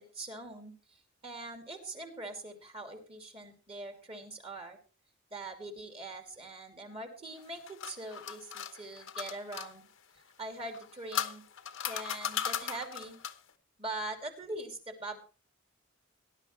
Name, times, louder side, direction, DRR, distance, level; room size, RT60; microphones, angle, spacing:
voice 1, 0.0-4.8 5.3-9.9 10.2-11.4 11.8-13.2 13.8-15.2, right 2 dB, 30° right, 5 dB, 2.7 m, -42 dB
sound 1, 7.4-9.7 10.7-13.5, left 9 dB, 70° left, 1.1 m, -37 dB
18.5 x 11.5 x 3.2 m, 0.36 s
head